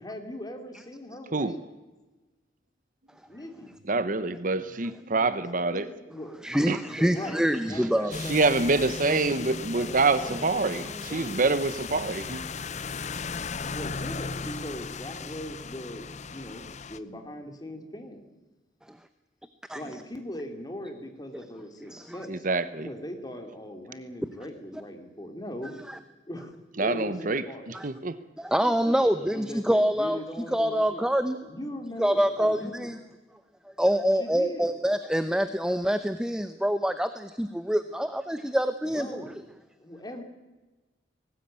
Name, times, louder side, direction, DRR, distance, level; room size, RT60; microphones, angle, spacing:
voice 1, 0.0-1.6 3.3-3.7 5.7-6.4 6.9-8.4 9.1-11.6 13.6-18.2 19.7-22.5 22.8-25.7 26.3-26.5 26.8-27.8 29.0-31.0 31.4-32.9 34.2-34.7 38.8-39.3 39.8-40.2, left 1 dB, 20° left, 3.0 m, -40 dB
voice 2, 3.9-5.9 6.7-6.8 8.3-10.8 11.1-12.4 22.3-22.9 26.8-28.2, right 3 dB, 45° right, 1.0 m, -26 dB
voice 3, 6.4-8.1 19.7-19.8 21.9-22.2 24.7-24.8 25.9-26.0 27.7-27.9 28.4-30.2 30.5-31.4 32.0-33.0 33.8-39.3, equal, 5° right, 0.8 m, -26 dB
sound 1, 8.1-17.0, left 5 dB, 40° left, 0.7 m, -36 dB
20.0 x 18.5 x 8.9 m
head